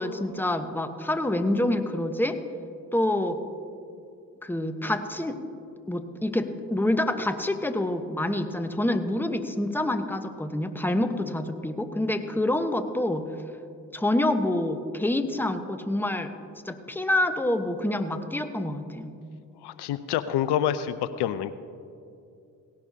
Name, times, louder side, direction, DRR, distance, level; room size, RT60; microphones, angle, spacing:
voice 1, 0.0-2.4 2.9-3.4 4.4-5.4 5.9-13.3 13.9-16.3 16.6-19.1, left 1 dB, 5° left, 8 dB, 1.0 m, -27 dB
voice 2, 19.6-21.5, left 10 dB, 70° left, 13 dB, 0.6 m, -27 dB
17.5 x 11.5 x 2.8 m, 2.5 s
hypercardioid pair, 45°, 42 cm